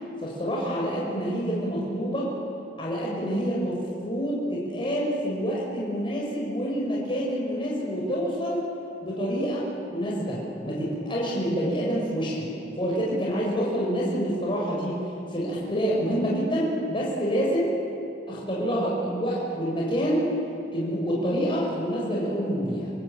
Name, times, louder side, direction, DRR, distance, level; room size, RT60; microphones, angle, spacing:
voice 1, 0.2-2.3 2.8-8.6 9.0-9.6 9.9-12.5 12.8-15.0 15.3-17.7 18.3-20.3 20.7-22.9, equal, 30° left, -4 dB, 5.4 m, -27 dB
27.0 x 19.5 x 8.7 m, 2.7 s
head